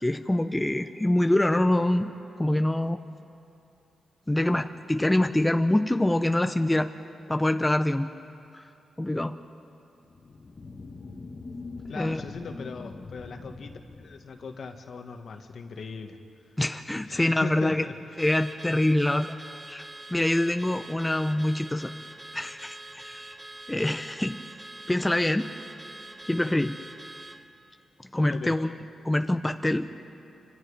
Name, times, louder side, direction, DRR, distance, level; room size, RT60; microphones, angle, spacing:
voice 1, 0.0-2.1 2.4-3.0 4.3-6.9 7.3-8.1 8.5-8.6 9.0-9.3 11.9-12.2 16.6-17.8 18.2-19.4 19.7-19.8 20.1-21.9 22.3-23.4 23.7-24.4 24.9-25.5 26.3-26.8 28.1-28.7 29.0-29.9, left 1 dB, 15° left, 7 dB, 0.8 m, -25 dB
sound 1, 10.0-15.0, left 3 dB, 45° left, 1.5 m, -43 dB
voice 2, 11.9-16.2 17.1-18.3 28.3-28.5, left 5 dB, 65° left, 5 dB, 1.8 m, -39 dB
Car / Alarm, 18.2-27.4, right 1 dB, 20° right, 1.5 m, -44 dB
28.5 x 25.5 x 5.1 m, 2.7 s
cardioid pair, 70°, 0 cm